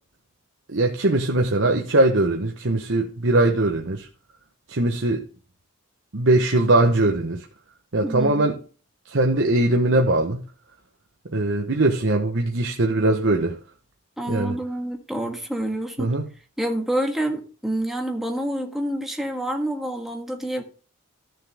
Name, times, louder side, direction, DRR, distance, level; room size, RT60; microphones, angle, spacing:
voice 1, 0.7-4.1 4.7-5.2 6.1-7.5 7.9-8.6 9.1-10.4 11.3-13.6 14.3-14.6 16.0-16.2, right 2 dB, 60° right, 1.1 m, -21 dB
voice 2, 8.0-8.5 14.2-16.1 16.6-20.6, right 1 dB, ahead, 1.6 m, -27 dB
13.5 x 6.5 x 3.5 m
head